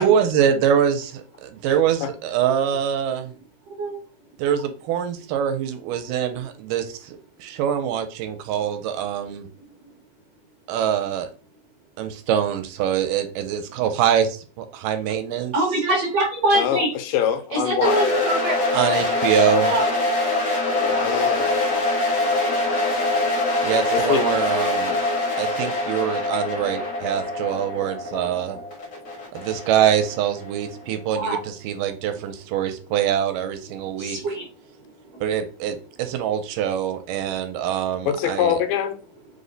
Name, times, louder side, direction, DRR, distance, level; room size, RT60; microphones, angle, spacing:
voice 1, 0.0-3.3 4.4-9.5 10.7-11.3 12.0-15.5 18.7-19.7 23.6-25.0 25.4-28.6 29.3-34.2 35.2-38.6, right 9 dB, 85° right, 2.2 m, -24 dB
voice 2, 15.5-16.9 17.5-18.6 19.3-19.9 20.8-21.0 21.4-21.5 31.1-31.4 34.0-34.5 35.1-35.2, right 1 dB, 60° right, 1.8 m, -24 dB
voice 3, 16.5-18.0 20.8-21.5 23.9-24.3 38.1-38.9, left 9 dB, 90° left, 2.3 m, -24 dB
sound 1, 17.8-30.7, left 2 dB, 70° left, 0.9 m, -24 dB
5.1 x 2.1 x 3.8 m
omnidirectional pair, 3.8 m